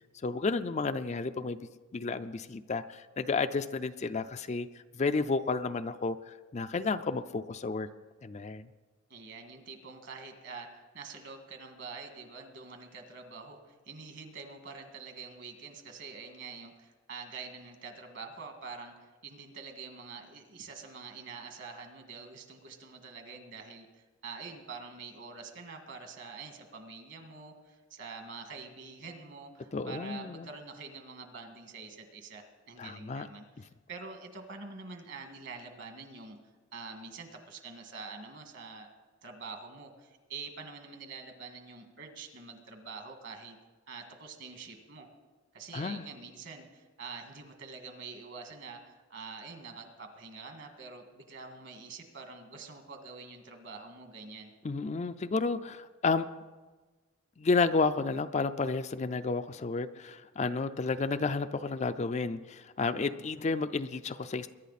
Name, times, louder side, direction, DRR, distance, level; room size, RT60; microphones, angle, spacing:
voice 1, 0.2-1.6 1.9-4.7 4.9-7.9 8.2-8.7 29.7-30.5 32.8-33.3 45.7-46.0 54.6-56.3 57.4-64.5, left 4 dB, 35° left, 10 dB, 0.4 m, -31 dB
voice 2, 9.1-33.5 33.9-36.4 36.7-38.9 39.2-43.6 43.9-45.1 45.5-54.5, right 4 dB, 60° right, 5 dB, 1.9 m, -46 dB
22.5 x 10.5 x 4.1 m, 1.3 s
head